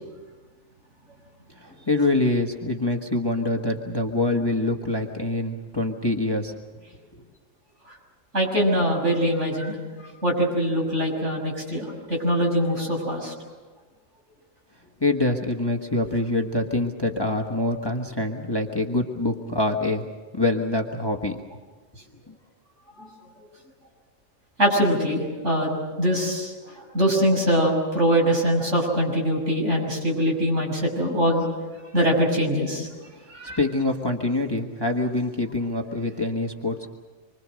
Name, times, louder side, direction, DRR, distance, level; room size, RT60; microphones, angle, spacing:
voice 1, 1.6-6.6 15.0-20.0 20.3-21.4 22.3-22.4 33.4-36.9, left 2 dB, 20° left, 2 dB, 1.4 m, -25 dB
voice 2, 8.3-9.7 10.2-13.3 23.0-23.1 24.6-26.5 26.9-31.5 31.9-32.9 33.3-33.6, equal, 60° right, -1 dB, 6.8 m, -23 dB
26.5 x 24.0 x 6.4 m, 1.3 s
omnidirectional pair, 1.4 m